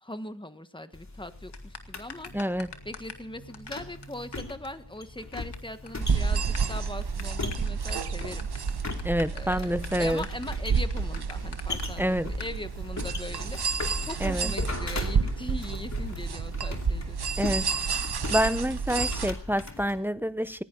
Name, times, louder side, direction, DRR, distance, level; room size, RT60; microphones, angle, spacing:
voice 1, 0.0-2.3 2.8-8.5 9.3-13.6 14.0-17.2, left 1 dB, 10° left, 1.4 m, -40 dB
sound 1, 0.9-20.0, left 3 dB, 45° left, 2.8 m, -39 dB
sound 2, 1.5-3.3 3.5-3.7 4.0-4.1 4.3-4.4 4.6-4.7 5.0-5.6 5.9-6.0 6.3-11.8 12.4-12.5, left 5 dB, 90° left, 2.2 m, -43 dB
voice 2, 2.3-2.7 9.0-10.3 12.0-12.3 14.2-14.5 17.4-17.9 18.3-20.6, equal, 5° right, 0.7 m, -27 dB
sound 3, 6.0-19.3, right 5 dB, 70° right, 1.2 m, -30 dB
19.0 x 17.0 x 3.9 m
wide cardioid pair, 95°, 40 cm